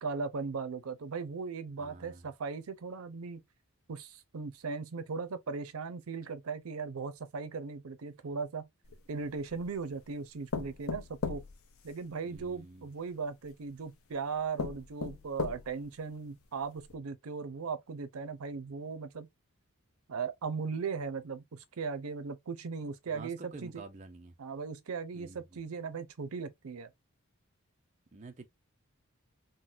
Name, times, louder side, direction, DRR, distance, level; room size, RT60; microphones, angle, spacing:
voice 1, 0.0-3.4 3.9-8.7 9.1-11.4 11.8-19.3 20.1-23.8 24.4-26.9, right 5 dB, 85° right, 0.6 m, -38 dB
voice 2, 1.8-2.3 12.2-12.9 23.1-24.3 25.1-25.6 28.1-28.5, right 3 dB, 35° right, 0.5 m, -49 dB
sound 1, 8.8-9.7 10.5-12.5 13.5-13.6 14.1-14.2 14.6-15.9 16.4-16.5 16.8-16.9, left 5 dB, 80° left, 0.5 m, -38 dB
3.8 x 2.1 x 2.4 m
head